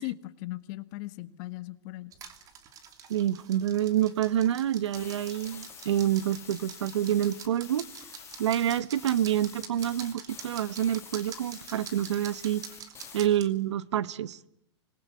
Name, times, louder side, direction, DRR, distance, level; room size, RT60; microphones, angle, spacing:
voice 1, 0.0-2.1, left 19 dB, 40° left, 1.6 m, -38 dB
sound 1, 2.1-13.5, right 7 dB, 25° right, 2.9 m, -46 dB
voice 2, 3.1-7.9 8.4-12.6 13.1-14.4, right 11 dB, 80° right, 1.1 m, -27 dB
sound 2, 4.9-13.3, left 8 dB, 20° left, 3.6 m, -48 dB
26.5 x 21.0 x 8.4 m
hypercardioid pair, 145°, 15 cm